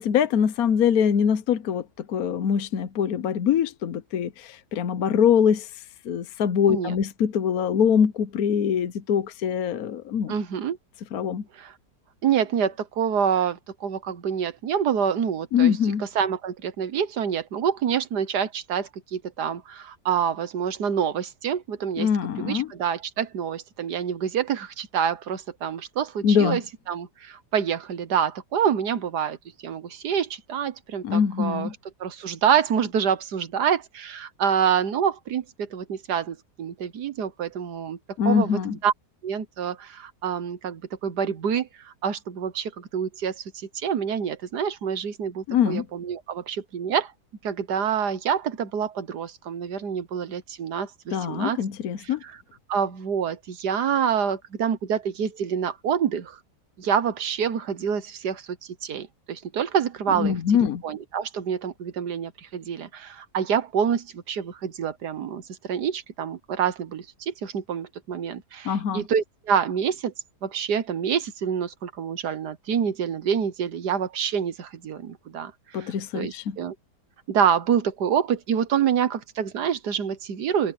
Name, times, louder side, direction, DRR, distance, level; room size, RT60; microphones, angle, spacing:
voice 1, 0.0-10.3 11.1-11.4 15.5-16.1 22.0-22.7 26.2-26.6 31.0-31.7 38.2-38.7 45.5-45.9 51.1-52.2 60.1-60.8 68.6-69.0 75.7-76.6, left 8 dB, 65° left, 1.3 m, -23 dB
voice 2, 10.3-10.8 11.5-11.7 12.2-22.1 22.4-26.6 26.9-29.4 29.6-31.7 32.0-38.0 38.3-38.9 39.2-47.1 47.4-51.6 52.0-52.4 52.7-56.4 56.8-58.6 58.8-60.3 60.8-70.1 70.4-76.8 77.3-80.7, right 8 dB, 80° right, 1.7 m, -27 dB
omnidirectional pair, 1.7 m